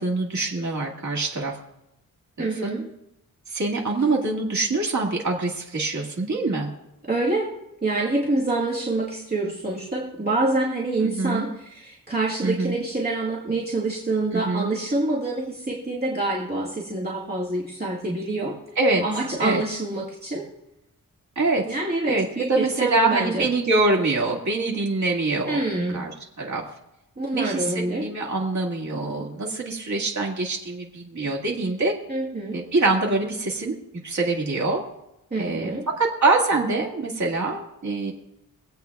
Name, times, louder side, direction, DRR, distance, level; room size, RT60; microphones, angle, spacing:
voice 1, 0.0-1.6 2.4-2.8 3.5-6.7 11.0-11.5 12.4-12.7 14.3-14.7 18.8-19.0 19.4-19.6 21.4-21.7 22.1-25.6 25.9-26.1 26.4-26.6 27.3-31.9 32.5-33.8 34.0-34.8 35.4-38.1, right 3 dB, 50° right, -2 dB, 2.1 m, -24 dB
voice 2, 2.4-2.8 7.1-7.5 7.8-18.5 19.0-20.5 21.7-23.5 25.5-26.0 27.2-28.1 32.1-32.6 35.3-35.8, right 2 dB, 25° right, -5 dB, 1.9 m, -26 dB
25.0 x 8.3 x 2.3 m, 0.86 s
wide cardioid pair, 125°, 35 cm